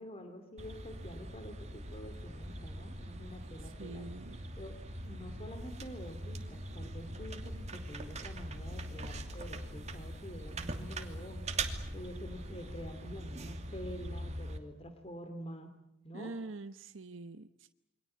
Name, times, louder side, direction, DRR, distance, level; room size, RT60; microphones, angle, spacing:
voice 1, 0.0-4.1 4.6-4.8 5.0-11.5 11.9-15.7 16.0-16.3, equal, 30° left, 8 dB, 2.7 m, -47 dB
sound 1, 0.6-14.6, right 2 dB, 35° right, 2.7 m, -42 dB
sound 2, 2.1-13.2, left 1 dB, 50° left, 5.9 m, -57 dB
voice 2, 3.6-4.4 16.1-17.7, right 3 dB, 70° right, 10 dB, 1.0 m, -45 dB
28.5 x 23.5 x 8.6 m, 0.80 s
head